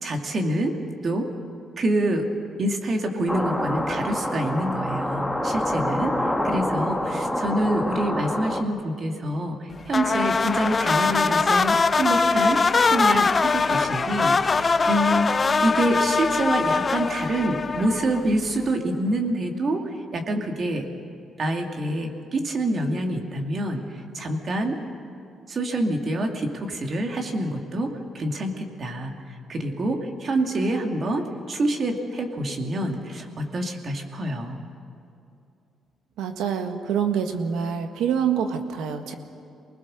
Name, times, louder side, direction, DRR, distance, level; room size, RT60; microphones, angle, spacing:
voice 1, 0.0-0.7 1.0-1.3 1.8-2.3 2.6-6.1 6.4-12.6 12.9-19.8 20.1-20.9 21.4-23.8 24.1-24.8 25.5-29.2 29.5-34.6, right 1 dB, 45° right, 3 dB, 2.5 m, -26 dB
sound 1, 3.3-8.6, left 1 dB, ahead, 1.7 m, -27 dB
sound 2, 9.9-18.4, left 4 dB, 35° left, 0.6 m, -22 dB
voice 2, 36.2-39.1, right 7 dB, 90° right, 6 dB, 1.6 m, -26 dB
24.5 x 20.0 x 6.4 m, 2.7 s
cardioid pair, 90°, 0 cm